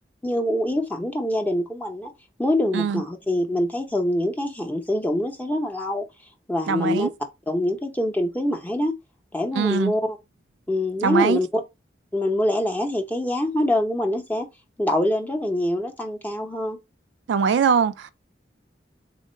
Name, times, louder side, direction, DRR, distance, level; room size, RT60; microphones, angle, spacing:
voice 1, 0.2-2.1 2.4-6.1 6.5-7.1 7.5-9.0 9.3-10.2 10.7-11.5 12.1-14.5 14.8-16.8, left 1 dB, 10° left, 0.6 m, -24 dB
voice 2, 6.7-7.1 9.5-9.9 11.0-11.4 17.3-18.1, right 6 dB, 80° right, 0.3 m, -22 dB
3.7 x 2.3 x 4.2 m
head